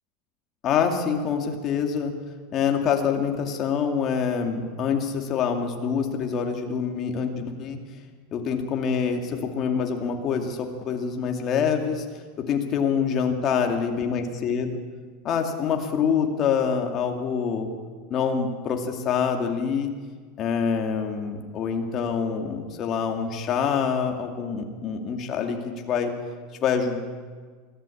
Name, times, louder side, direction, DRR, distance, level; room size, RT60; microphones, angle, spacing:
voice 1, 0.6-2.1 2.5-7.8 8.3-12.0 12.4-14.8 15.2-17.7 18.1-19.9 20.4-26.1 26.6-27.0, left 6 dB, 30° left, 3 dB, 2.4 m, -26 dB
24.0 x 15.0 x 8.5 m, 1.6 s
supercardioid pair, 165°, 0 cm